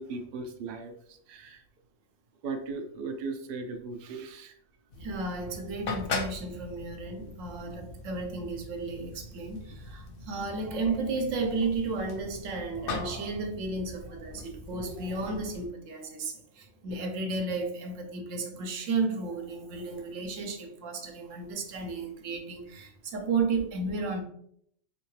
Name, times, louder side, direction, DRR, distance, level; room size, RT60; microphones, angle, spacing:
voice 1, 0.0-1.6 2.4-4.6, right 4 dB, 60° right, 5 dB, 0.6 m, -38 dB
sound 1, 4.9-15.7, left 3 dB, 60° left, 0.6 m, -40 dB
voice 2, 4.9-24.2, right 3 dB, 80° right, 3 dB, 1.0 m, -33 dB
3.6 x 2.8 x 3.1 m, 0.67 s
omnidirectional pair, 1.3 m